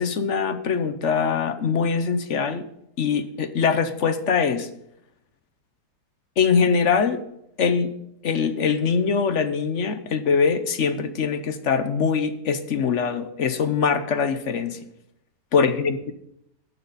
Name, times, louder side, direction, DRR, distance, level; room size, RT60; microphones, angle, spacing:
voice 1, 0.0-2.7 3.0-4.7 6.4-7.2 7.6-7.9 8.2-14.8 15.5-16.1, left 6 dB, 55° left, 10 dB, 1.0 m, -23 dB
15.0 x 10.5 x 4.1 m, 0.77 s
omnidirectional pair, 1.8 m